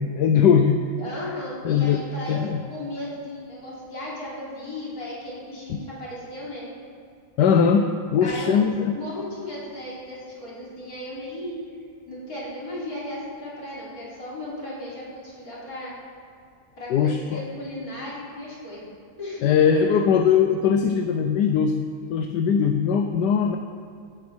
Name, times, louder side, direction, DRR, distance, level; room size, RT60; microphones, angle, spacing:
voice 1, 0.0-0.8 1.6-2.6 5.7-5.8 7.4-9.0 16.9-17.4 19.4-23.6, left 7 dB, 85° left, 5 dB, 1.3 m, -20 dB
voice 2, 1.0-2.4 2.7-6.7 8.2-8.6 8.9-11.6 12.0-15.9 16.8-18.8 19.2-20.0, left 1 dB, 60° left, -7 dB, 4.3 m, -35 dB
16.0 x 10.0 x 4.5 m, 2.3 s
omnidirectional pair, 1.8 m